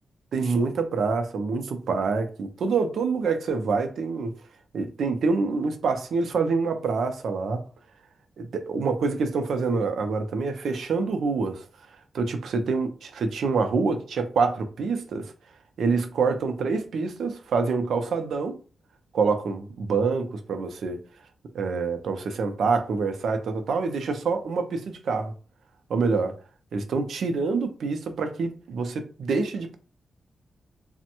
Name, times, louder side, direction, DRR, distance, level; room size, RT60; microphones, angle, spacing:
voice 1, 0.3-4.4 4.7-7.6 8.4-11.7 12.1-15.3 15.8-18.6 19.1-21.0 21.5-25.3 25.9-26.4 26.7-29.8, right 4 dB, 75° right, 0.5 m, -26 dB
3.3 x 2.1 x 2.9 m
wide cardioid pair, 165°, 0 cm